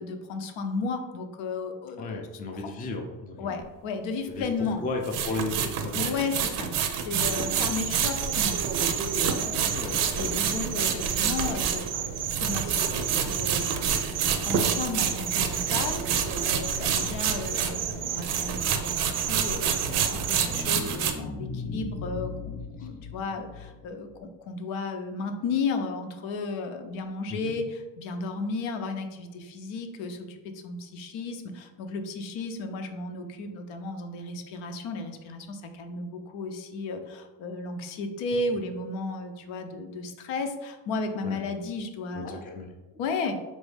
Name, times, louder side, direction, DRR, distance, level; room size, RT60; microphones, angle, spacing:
voice 1, 0.0-2.2 3.4-4.8 5.9-6.7 7.1-8.6 9.1-11.8 12.4-13.7 14.5-16.0 16.4-20.0 20.3-23.5 23.8-24.1 24.5-30.2 30.6-42.4 43.0-43.4, left 4 dB, 80° left, 6 dB, 0.7 m, -34 dB
voice 2, 2.0-3.6 4.3-6.1 9.5-10.1 16.9-17.2 22.8-22.9 27.3-27.5 41.2-41.4 42.1-42.7, left 2 dB, 20° left, 2 dB, 0.4 m, -35 dB
sound 1, 3.6-3.7 5.0-17.9 18.2-21.1, right 8 dB, 90° right, 0.6 m, -28 dB
sound 2, 7.2-20.6, right 7 dB, 45° right, 0.4 m, -32 dB
sound 3, 19.8-24.2, left 3 dB, 40° left, 0.8 m, -38 dB
4.1 x 2.7 x 3.3 m, 1.1 s
cardioid pair, 120°, 48 cm